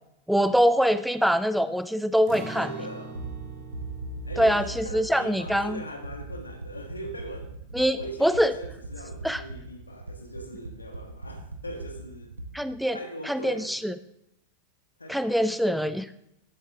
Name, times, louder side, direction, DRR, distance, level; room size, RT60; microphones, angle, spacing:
voice 1, 0.3-2.7 4.4-5.8 7.7-8.5 9.2-9.4 12.5-13.0 13.3-13.9 15.1-16.1, equal, ahead, 12 dB, 0.4 m, -24 dB
Acoustic guitar, 2.3-8.2 8.5-8.7 9.1-9.6, right 2 dB, 45° right, 2.1 m, -44 dB
voice 2, 2.5-3.2 4.2-7.5 7.9-12.4 12.9-13.8 15.0-15.2, right 1 dB, 80° left, 4 dB, 1.6 m, -40 dB
sound 1, 3.0-12.8, right 2 dB, 80° right, 0.9 m, -40 dB
14.0 x 7.9 x 3.6 m, 0.81 s
figure-of-eight pair, 90°, 0 cm